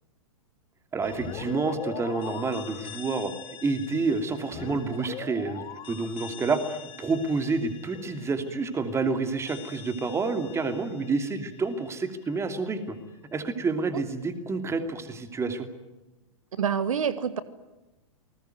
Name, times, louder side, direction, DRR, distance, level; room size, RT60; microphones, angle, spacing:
voice 1, 0.9-3.3 3.6-13.0 13.3-15.7, right 4 dB, 15° right, 8 dB, 2.9 m, -29 dB
sound 1, 1.0-12.6, left 7 dB, 30° left, 3.7 m, -42 dB
voice 2, 16.6-17.4, right 7 dB, 80° right, 14 dB, 1.5 m, -27 dB
29.0 x 20.0 x 9.4 m, 1.0 s
hypercardioid pair, 115°, 17 cm